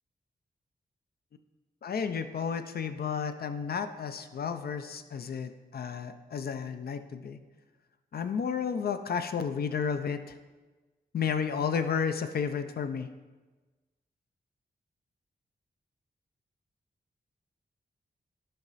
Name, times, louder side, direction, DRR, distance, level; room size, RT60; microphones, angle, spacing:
voice 1, 1.8-7.4 8.1-10.4 11.1-13.1, left 6 dB, 65° left, 9 dB, 0.5 m, -32 dB
10.0 x 5.5 x 4.0 m, 1.2 s
wide cardioid pair, 160°, 17 cm